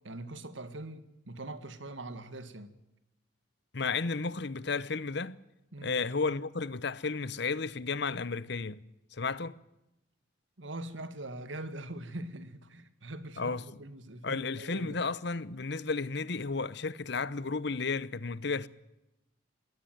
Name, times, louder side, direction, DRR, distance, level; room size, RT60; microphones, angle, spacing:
voice 1, 0.0-2.7 5.7-6.0 10.6-15.0, right 1 dB, 80° right, 2.0 m, -42 dB
voice 2, 3.7-5.4 5.8-8.8 9.1-9.6 13.4-13.7 14.2-18.7, left 4 dB, 65° left, 0.9 m, -33 dB
22.0 x 17.0 x 9.3 m
head